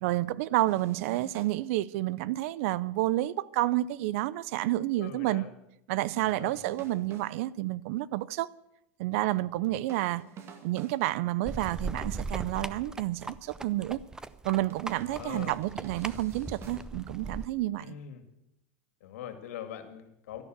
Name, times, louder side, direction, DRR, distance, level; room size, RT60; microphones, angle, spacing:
voice 1, 0.0-5.4 5.9-8.5 9.0-10.2 10.6-14.0 14.4-17.9, right 16 dB, 65° right, 0.6 m, -30 dB
sound 1, 0.7-1.6 6.2-7.4 9.9-11.1 14.7-16.8, right 6 dB, 35° right, 2.0 m, -48 dB
voice 2, 5.0-5.5 6.2-7.0 9.6-9.8 14.9-15.6 17.8-18.2 19.0-20.4, left 9 dB, 85° left, 2.3 m, -43 dB
sound 2, 11.5-17.5, right 3 dB, 10° right, 0.5 m, -39 dB
13.0 x 11.5 x 8.0 m
supercardioid pair, 135°, 8 cm